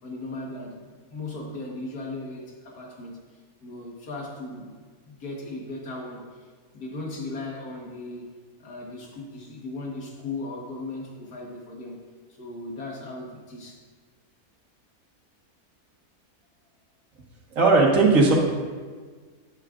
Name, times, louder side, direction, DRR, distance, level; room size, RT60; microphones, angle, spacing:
voice 1, 0.0-3.3 3.6-4.8 5.1-12.0 12.4-13.8, left 2 dB, 80° left, -1 dB, 2.0 m, -37 dB
voice 2, 17.5-18.3, right 3 dB, 60° right, -2 dB, 1.9 m, -17 dB
10.5 x 9.8 x 2.5 m, 1.5 s
omnidirectional pair, 1.6 m